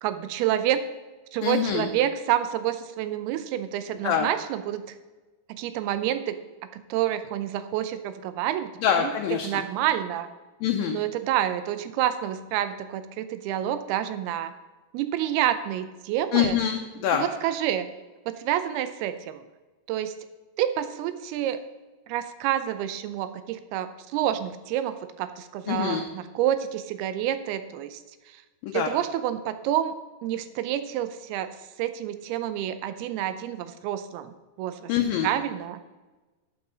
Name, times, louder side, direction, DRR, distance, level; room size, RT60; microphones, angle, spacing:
voice 1, 0.0-0.8 1.3-4.8 5.6-6.4 6.9-8.7 9.0-9.1 9.4-10.3 10.9-14.5 14.9-16.6 17.1-17.9 18.4-19.4 19.9-20.1 20.6-21.6 22.1-28.0 28.7-31.5 31.8-34.9 35.2-35.9, right 11 dB, 80° right, 11 dB, 2.6 m, -28 dB
voice 2, 1.4-1.9 4.0-4.3 8.8-9.5 10.6-11.0 16.3-17.2 25.7-26.0 28.6-28.9 34.9-35.3, left 9 dB, 75° left, 3 dB, 2.1 m, -25 dB
11.0 x 8.8 x 3.9 m, 1.2 s
omnidirectional pair, 4.6 m